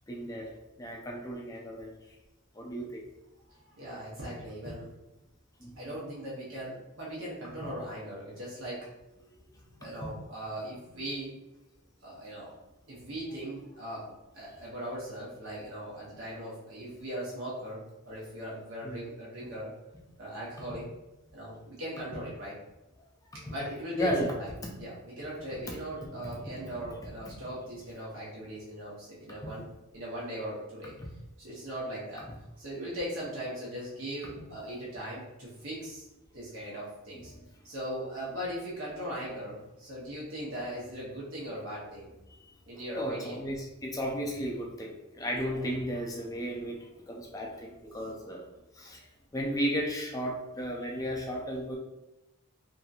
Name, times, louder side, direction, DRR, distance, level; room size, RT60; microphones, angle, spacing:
voice 1, 0.1-2.0 2.6-3.0 4.7-4.8 5.6-5.9 7.4-7.5 10.0-10.1 18.8-19.0 20.7-20.8 22.1-22.2 23.5-23.6 23.9-24.5 25.7-25.8 26.0-26.1 26.7-27.3 29.4-29.5 34.2-34.3 36.7-36.8 37.2-37.3 42.9-46.8 47.1-48.4 48.7-49.0 49.3-51.8, equal, 15° left, -1 dB, 0.4 m, -34 dB
voice 2, 3.5-4.9 5.8-8.9 9.8-11.3 12.0-12.5 12.9-19.7 20.2-20.8 21.3-22.5 23.4-24.5 24.8-29.6 29.9-30.9 31.4-32.2 32.6-36.1 36.3-37.3 37.6-42.1 42.6-43.4 45.6-45.7, equal, 65° right, -7 dB, 0.8 m, -39 dB
2.8 x 2.6 x 2.4 m, 0.98 s
head